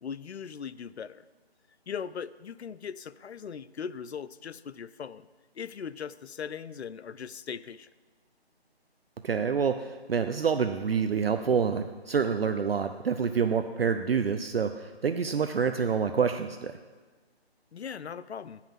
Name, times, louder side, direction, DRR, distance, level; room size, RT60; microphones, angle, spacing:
voice 1, 0.0-1.2 1.9-5.3 5.5-7.9 17.7-18.6, left 7 dB, 80° left, 16 dB, 0.5 m, -39 dB
voice 2, 9.2-16.7, right 6 dB, 65° right, 8 dB, 0.5 m, -27 dB
9.0 x 5.8 x 7.4 m, 1.3 s
figure-of-eight pair, 165°, 32 cm